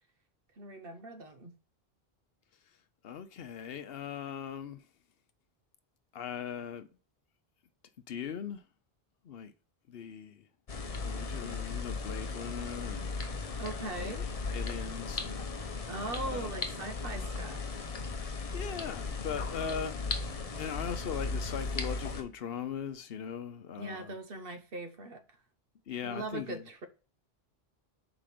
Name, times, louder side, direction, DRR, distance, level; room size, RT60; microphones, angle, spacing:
voice 1, 0.6-1.5 13.6-14.3 15.9-17.9 23.8-25.2 26.0-26.9, right 2 dB, 65° right, 1.2 m, -40 dB
voice 2, 3.0-4.9 6.1-6.9 8.1-8.6 9.2-9.5 9.9-10.5 11.0-13.2 14.0-14.1 14.5-15.5 16.2-16.8 18.1-20.0 20.5-24.2 25.9-26.7, left 7 dB, 70° left, 0.9 m, -40 dB
sound 1, 10.7-22.2, left 4 dB, 40° left, 0.8 m, -36 dB
5.0 x 5.0 x 5.9 m
omnidirectional pair, 1.0 m